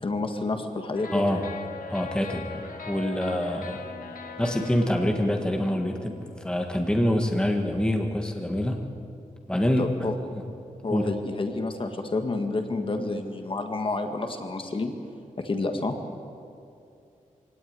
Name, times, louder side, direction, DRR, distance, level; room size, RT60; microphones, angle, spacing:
voice 1, 0.0-1.2 9.8-10.1 10.8-14.9 15.4-16.0, left 3 dB, 40° left, 5 dB, 1.8 m, -29 dB
sound 1, 0.9-6.7, left 4 dB, 85° left, 2.1 m, -41 dB
voice 2, 1.1-1.4 1.9-2.5 2.9-3.8 4.4-6.2 6.4-8.8 9.5-9.9 10.3-10.4 10.9-11.1, left 1 dB, 5° left, 3 dB, 1.6 m, -25 dB
25.0 x 17.5 x 9.6 m, 2.5 s
wide cardioid pair, 180°, 14 cm